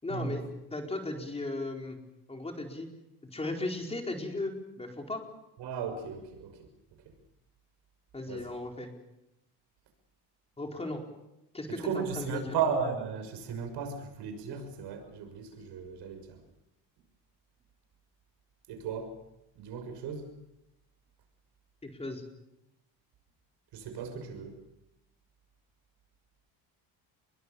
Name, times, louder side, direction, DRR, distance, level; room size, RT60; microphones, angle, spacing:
voice 1, 0.0-2.0 2.3-2.9 3.3-5.2 8.1-8.9 10.6-11.0 11.5-12.5 21.8-22.2, left 2 dB, 15° left, 2 dB, 4.4 m, -36 dB
voice 2, 5.6-6.5 8.3-8.5 11.7-16.4 18.7-19.1 19.6-20.3 23.7-24.6, right 6 dB, 70° right, 7 dB, 6.4 m, -35 dB
29.5 x 23.0 x 7.0 m, 0.88 s
cardioid pair, 140°, 43 cm